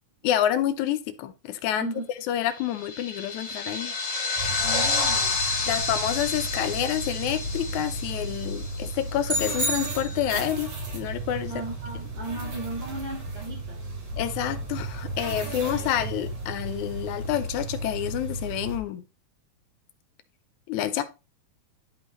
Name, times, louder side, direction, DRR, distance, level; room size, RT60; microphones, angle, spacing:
voice 1, 0.2-1.9 2.3-3.9 5.7-11.5 14.2-19.0 20.7-21.0, left 11 dB, 85° left, 2.1 m, -28 dB
voice 2, 1.8-2.1 4.6-5.3 11.5-13.8 15.4-15.8, right 2 dB, 85° right, 3.9 m, -36 dB
sound 1, 2.5-9.3, left 4 dB, 60° left, 0.6 m, -30 dB
sound 2, 4.4-18.8, right 2 dB, 70° right, 3.6 m, -34 dB
sound 3, 9.2-10.6, equal, 5° right, 2.4 m, -30 dB
10.5 x 5.2 x 3.1 m
omnidirectional pair, 3.3 m